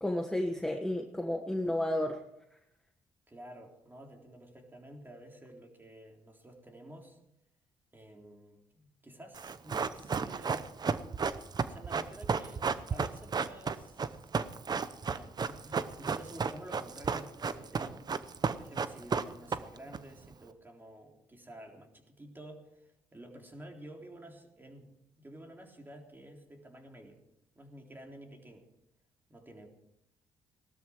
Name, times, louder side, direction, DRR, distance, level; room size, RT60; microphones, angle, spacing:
voice 1, 0.0-2.2, left 1 dB, 5° left, 3 dB, 1.4 m, -32 dB
voice 2, 3.3-7.2 7.9-10.7 11.6-14.2 15.1-18.1 18.5-27.2 27.6-28.7 29.3-29.7, right 1 dB, 20° right, 1 dB, 3.6 m, -51 dB
Run, 9.3-20.0 20.2-20.3, right 5 dB, 40° right, 0.8 m, -33 dB
18.0 x 12.5 x 4.7 m, 0.80 s
cardioid pair, 80°, 11 cm